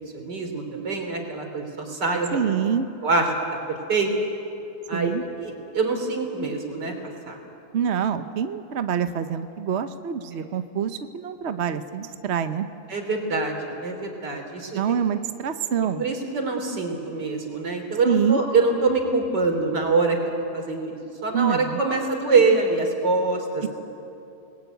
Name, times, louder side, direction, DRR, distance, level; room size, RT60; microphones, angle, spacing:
voice 1, 0.1-2.5 3.0-3.3 3.7-4.1 4.9-5.1 5.4-6.9 7.3-7.4 12.9-14.9 16.0-20.2 20.5-23.7, right 3 dB, 65° right, 3 dB, 4.0 m, -24 dB
voice 2, 2.3-2.9 4.9-5.2 7.7-12.7 14.7-16.0 18.0-18.4 21.3-22.0 22.3-22.4 23.6-23.7, right 8 dB, 50° right, 9 dB, 0.9 m, -26 dB
29.0 x 20.0 x 9.3 m, 2.9 s
omnidirectional pair, 2.0 m